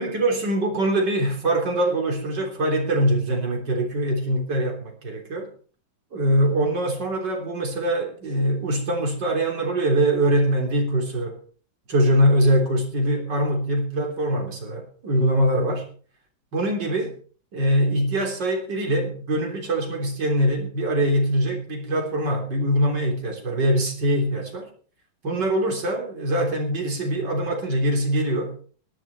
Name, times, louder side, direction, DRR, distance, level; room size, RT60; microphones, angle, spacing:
voice 1, 0.0-5.5 6.1-11.4 11.9-15.9 16.5-17.1 17.5-24.7 25.2-28.5, right 1 dB, 60° right, 1 dB, 4.1 m, -23 dB
17.5 x 11.5 x 4.3 m, 0.41 s
omnidirectional pair, 2.2 m